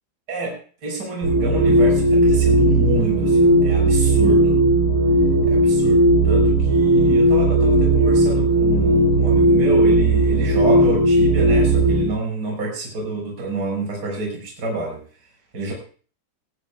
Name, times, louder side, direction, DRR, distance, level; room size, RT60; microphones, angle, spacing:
voice 1, 0.3-4.6 5.4-15.0 15.5-15.7, right 2 dB, 20° right, -1 dB, 6.0 m, -27 dB
sound 1, 1.2-12.1, right 1 dB, 40° right, 5.9 m, -16 dB
20.5 x 15.0 x 2.3 m, 0.42 s
omnidirectional pair, 5.1 m